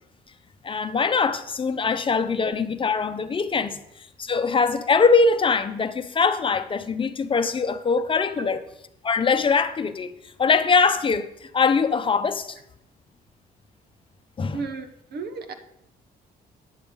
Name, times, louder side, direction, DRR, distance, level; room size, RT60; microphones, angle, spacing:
voice 1, 0.6-8.6 9.0-12.6 14.4-14.6, left 5 dB, 30° left, 0.7 m, -22 dB
voice 2, 14.5-15.5, right 4 dB, 70° right, 1.0 m, -34 dB
9.0 x 6.9 x 5.3 m
cardioid pair, 95°, 17 cm